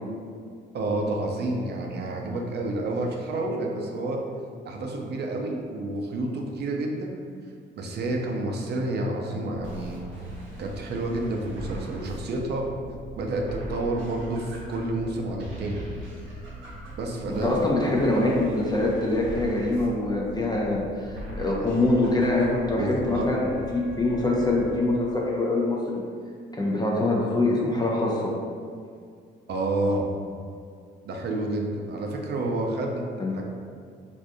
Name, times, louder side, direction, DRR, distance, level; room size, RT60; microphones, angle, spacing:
voice 1, 0.7-4.2 4.6-7.2 7.8-10.0 10.6-12.7 13.2-15.8 17.0-17.5 22.8-23.3 29.5-30.1 31.0-33.1 33.3-33.4, right 2 dB, 55° right, 1 dB, 0.5 m, -29 dB
sound 1, 9.5-24.9, equal, 80° right, 0.8 m, -40 dB
voice 2, 17.3-26.0 26.5-28.3 33.2-33.3, left 2 dB, 20° left, -3 dB, 0.4 m, -24 dB
3.4 x 2.5 x 2.6 m, 2.2 s
cardioid pair, 90°, 20 cm